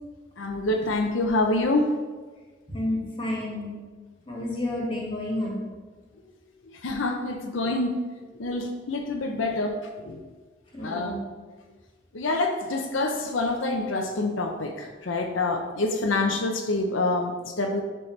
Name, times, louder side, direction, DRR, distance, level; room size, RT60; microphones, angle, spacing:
voice 1, 0.4-1.9 6.8-8.0 8.3-9.8 10.0-10.2 10.8-11.2 12.1-17.8, left 2 dB, 90° left, 3 dB, 0.7 m, -26 dB
voice 2, 2.7-3.7 4.3-5.6 10.7-11.2, left 1 dB, 30° left, -3 dB, 1.9 m, -30 dB
10.5 x 4.3 x 3.2 m, 1.4 s
head